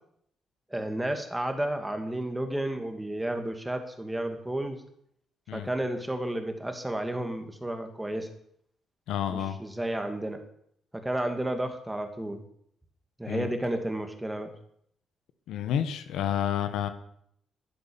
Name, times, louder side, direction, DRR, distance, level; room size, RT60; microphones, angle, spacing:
voice 1, 0.7-4.8 5.5-8.3 9.3-10.4 10.9-12.4 13.2-14.5, right 1 dB, 10° right, 6 dB, 2.3 m, -32 dB
voice 2, 9.1-9.6 13.3-13.5 15.5-16.9, left 10 dB, 85° left, 10 dB, 1.4 m, -29 dB
12.0 x 11.0 x 7.1 m, 0.69 s
cardioid pair, 90°, 0 cm